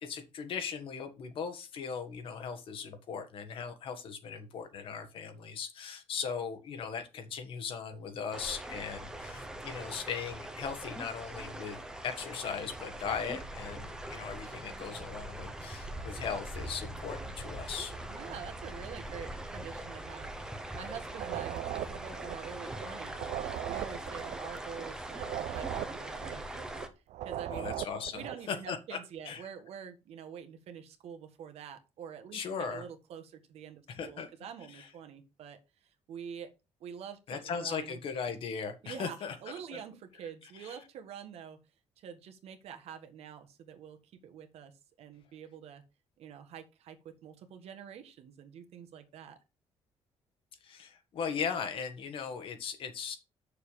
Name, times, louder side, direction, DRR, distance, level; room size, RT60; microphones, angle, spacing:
voice 1, 0.0-17.9 27.5-29.0 29.2-29.5 32.3-32.8 33.9-34.3 34.7-34.9 37.3-39.3 39.7-39.8 40.5-40.7 50.6-53.2, left 6 dB, 50° left, 8 dB, 1.5 m, -38 dB
sound 1, 8.3-26.9, right 1 dB, 5° right, 1.0 m, -42 dB
voice 2, 18.1-20.3 20.7-26.7 27.2-27.7 28.1-35.6 36.1-36.5 36.8-38.0 38.8-41.6 42.0-44.7 45.0-45.8 46.2-49.4, right 8 dB, 65° right, 6 dB, 1.5 m, -46 dB
sound 2, 21.1-22.8 23.1-26.8 27.1-28.5, right 13 dB, 85° right, 0.5 m, -39 dB
7.4 x 6.8 x 5.0 m, 0.28 s
cardioid pair, 175°, 11 cm